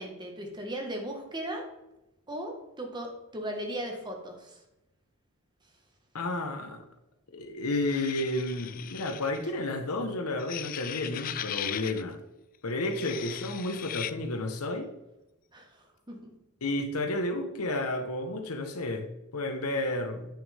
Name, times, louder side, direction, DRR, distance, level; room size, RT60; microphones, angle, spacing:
voice 1, 0.0-1.6 2.3-4.6 9.4-9.5 15.5-16.3, right 1 dB, 20° right, 2 dB, 1.5 m, -37 dB
voice 2, 6.1-6.8 7.3-12.2 12.6-14.9 16.6-20.3, left 2 dB, 85° left, 6 dB, 1.1 m, -31 dB
sound 1, 7.9-9.4 10.4-12.0 12.8-14.1, left 11 dB, 40° left, 0.3 m, -38 dB
8.9 x 6.3 x 3.5 m, 0.92 s
head